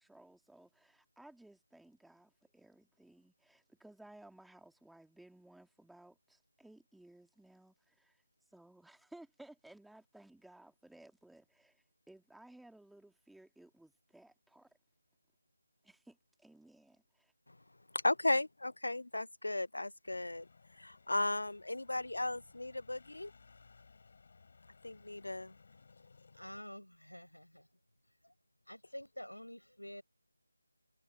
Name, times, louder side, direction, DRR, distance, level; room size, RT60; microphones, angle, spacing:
voice 1, 0.0-8.2 8.5-14.7 15.8-17.3, right 1 dB, ahead, 2.4 m, -59 dB
voice 2, 17.9-20.5 20.8-23.3 24.8-25.6, left 2 dB, 65° left, 0.3 m, -35 dB
sound 1, 20.0-26.6, left 4 dB, 40° left, 5.6 m, -62 dB
voice 3, 26.3-27.7 28.0-28.3 28.7-30.0, equal, 90° left, 6.9 m, -49 dB
figure-of-eight pair, 160°, 0 cm